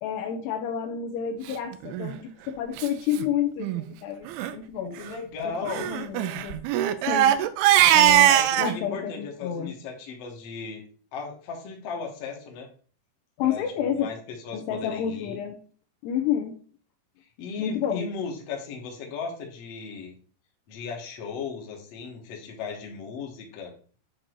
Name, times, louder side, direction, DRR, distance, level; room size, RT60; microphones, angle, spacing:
voice 1, 0.0-5.0 5.5-6.6 7.1-7.4 7.9-9.7 13.4-14.1 14.5-15.6 16.0-16.6 17.6-18.1, left 9 dB, 80° left, 6 dB, 2.7 m, -30 dB
Crying sobbing, 1.9-2.1 2.8-2.9 3.1-3.3 3.6-3.8 4.3-4.5 5.7-8.7, right 12 dB, 85° right, 2.2 m, -21 dB
voice 2, 5.0-5.9 8.2-10.8 11.1-12.7 13.4-14.2 14.4-15.4 17.4-20.1 20.7-23.7, left 5 dB, 55° left, 0 dB, 1.8 m, -36 dB
8.7 x 3.8 x 4.6 m, 0.42 s
omnidirectional pair, 5.1 m